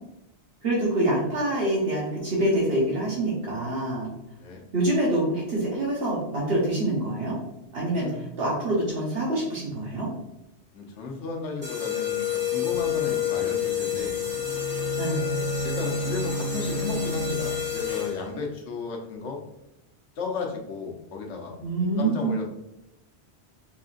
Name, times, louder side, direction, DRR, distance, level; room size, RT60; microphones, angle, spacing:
voice 1, 0.6-4.1 4.7-7.4 7.7-10.1 15.0-15.2 21.6-22.3, right 1 dB, 60° right, -5 dB, 1.2 m, -26 dB
voice 2, 7.9-8.3 10.7-14.1 15.6-19.4 20.2-21.5 22.0-22.4, left 4 dB, 85° left, 1 dB, 1.1 m, -34 dB
sound 1, 11.6-18.4, left 10 dB, 35° right, 1.4 m, -29 dB
Bowed string instrument, 14.3-17.9, right 3 dB, 25° left, 1.6 m, -32 dB
4.7 x 3.7 x 2.5 m, 0.87 s
omnidirectional pair, 1.2 m